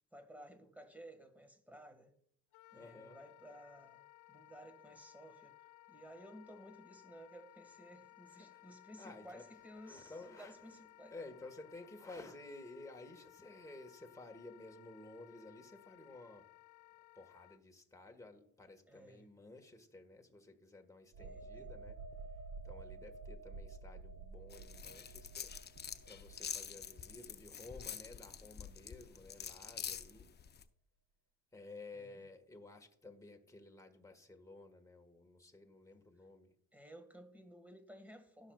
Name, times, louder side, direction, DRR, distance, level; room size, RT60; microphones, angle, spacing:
voice 1, 0.1-2.1 2.7-4.0 4.3-5.5 5.9-11.1 18.9-19.3 21.2-21.7 31.9-32.2 36.7-38.5, equal, 5° right, 1.7 m, -55 dB
Wind instrument woodwind instrument, 2.5-17.6, left 19 dB, 90° left, 0.5 m, -61 dB
voice 2, 2.8-3.2 8.3-16.5 17.1-22.0 22.3-22.4 22.6-25.5 26.0-30.3 31.5-36.5, left 2 dB, 10° left, 1.5 m, -54 dB
sound 1, 21.1-28.6 28.9-29.1, right 3 dB, 65° right, 1.1 m, -51 dB
sound 2, 24.5-30.6, left 7 dB, 35° left, 0.6 m, -47 dB
17.0 x 6.2 x 2.4 m
cardioid pair, 90°, 30 cm